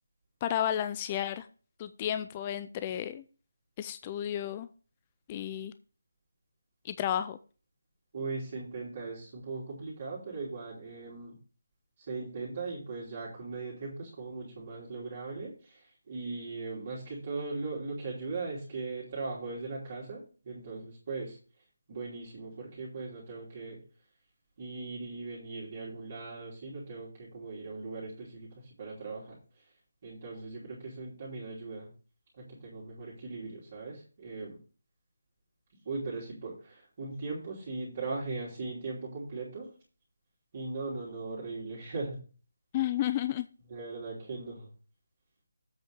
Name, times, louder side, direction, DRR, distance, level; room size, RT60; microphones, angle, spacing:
voice 1, 0.4-1.5 1.8-3.2 3.8-4.7 5.3-5.7 6.8-7.4 42.7-43.5, left 11 dB, 20° left, 11 dB, 0.3 m, -32 dB
voice 2, 8.1-11.4 12.1-21.4 21.9-23.8 24.6-29.4 30.0-31.9 32.4-34.6 35.8-39.7 40.5-42.2 43.7-44.7, right 3 dB, 35° right, -5 dB, 2.9 m, -39 dB
8.0 x 5.3 x 5.1 m, 0.37 s
figure-of-eight pair, 165°, 0 cm